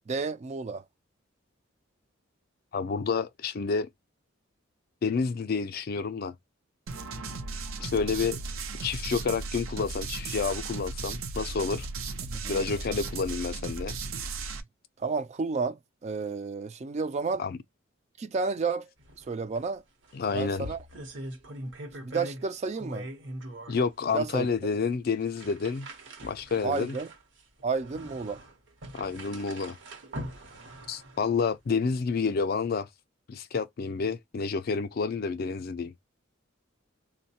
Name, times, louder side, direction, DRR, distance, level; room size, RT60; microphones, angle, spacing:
voice 1, 0.1-0.8 12.2-12.6 15.0-17.4 18.2-18.9 19.2-19.8 20.3-20.8 22.0-23.1 24.1-24.5 26.6-27.1 27.6-28.4, right 4 dB, 35° right, 0.3 m, -31 dB
voice 2, 2.7-3.9 5.0-6.3 7.8-8.4 8.8-11.9 12.5-14.0 17.4-17.6 20.1-20.7 23.7-25.9 26.2-27.0 28.9-29.8 30.9-32.9 33.3-35.9, left 5 dB, 50° left, 0.4 m, -29 dB
sound 1, 6.9-14.6, right 4 dB, 85° right, 0.6 m, -36 dB
sound 2, 19.0-19.3 19.5-19.6 20.0-22.5 22.7-23.8 24.4-24.5 25.2-31.3, right 1 dB, 60° right, 0.9 m, -42 dB
3.9 x 2.1 x 2.7 m
head